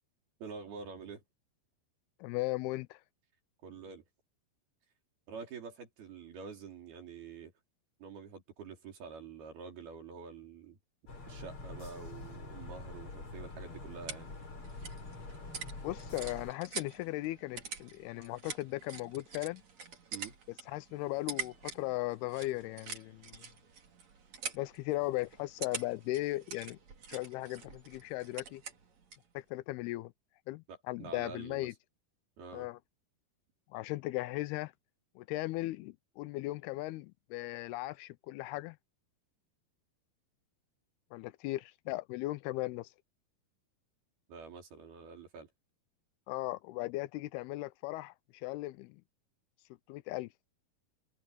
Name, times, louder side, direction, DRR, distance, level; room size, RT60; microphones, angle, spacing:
voice 1, 0.4-1.2 3.6-4.0 5.3-7.5 8.0-10.8 11.3-14.3 20.1-20.3 30.7-31.7 32.4-32.7 44.3-45.5, right 5 dB, 70° right, 6.0 m, -47 dB
voice 2, 2.2-3.0 15.8-19.6 20.7-23.4 24.5-26.8 27.1-28.6 29.3-30.1 30.5-31.7 32.5-32.8 33.7-34.7 35.2-38.8 41.1-42.9 46.3-49.0 49.9-50.3, left 19 dB, 85° left, 2.5 m, -37 dB
sound 1, 11.1-16.5, left 3 dB, 35° left, 5.5 m, -45 dB
sound 2, 13.6-29.3, right 6 dB, 45° right, 4.1 m, -46 dB
omnidirectional pair, 4.6 m